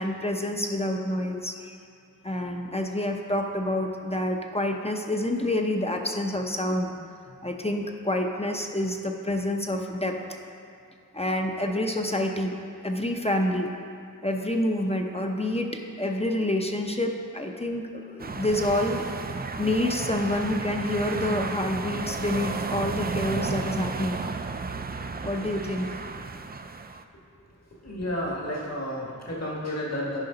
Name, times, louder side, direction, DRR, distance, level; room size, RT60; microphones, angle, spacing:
voice 1, 0.0-1.8 2.2-6.9 7.4-10.4 11.1-12.5 12.8-13.7 14.2-19.0 19.6-24.2 25.2-25.9, left 1 dB, 20° left, 2 dB, 0.6 m, -28 dB
sound 1, 18.2-27.0, right 4 dB, 30° right, 0.4 m, -33 dB
voice 2, 27.7-30.2, left 1 dB, 55° left, -4 dB, 1.7 m, -31 dB
10.5 x 4.8 x 3.9 m, 2.3 s
wide cardioid pair, 40°, 31 cm